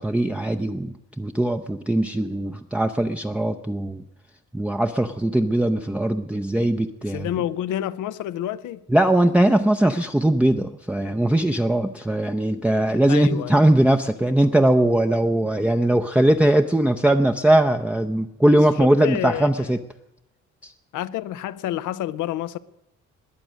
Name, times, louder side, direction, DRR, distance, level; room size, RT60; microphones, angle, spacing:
voice 1, 0.0-4.0 4.5-7.3 8.9-19.8 20.6-20.7, right 1 dB, 5° right, 0.6 m, -20 dB
voice 2, 7.1-8.8 13.1-13.6 18.5-19.7 20.9-22.6, left 12 dB, 85° left, 0.7 m, -29 dB
21.0 x 7.9 x 6.3 m
cardioid pair, 90°, 30 cm